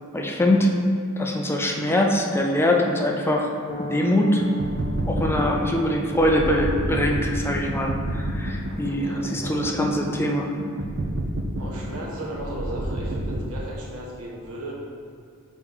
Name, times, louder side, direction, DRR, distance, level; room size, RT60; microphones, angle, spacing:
voice 1, 0.1-0.7 1.2-3.5 3.8-4.4 5.1-10.5, left 1 dB, 10° left, 0 dB, 0.5 m, -23 dB
sound 1, 3.7-12.1, left 1 dB, 40° left, 0.7 m, -39 dB
sound 2, 4.4-13.4, right 1 dB, 55° right, 0.6 m, -29 dB
voice 2, 8.9-9.6 11.6-14.7, right 1 dB, 80° right, -3 dB, 1.3 m, -36 dB
6.2 x 4.3 x 4.0 m, 2.3 s
head